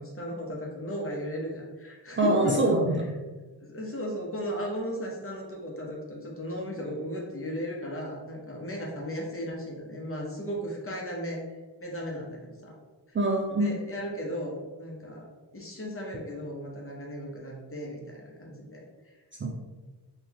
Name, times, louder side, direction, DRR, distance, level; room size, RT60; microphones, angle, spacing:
voice 1, 0.0-2.6 3.6-11.4 11.8-12.8 13.1-13.2 13.5-15.3 15.5-18.8, equal, 30° left, -1 dB, 1.0 m, -36 dB
voice 2, 2.2-3.1 13.1-13.7 19.4-19.5, right 2 dB, 30° right, -1 dB, 0.4 m, -24 dB
3.8 x 2.6 x 3.0 m, 1.2 s
cardioid pair, 70°, 43 cm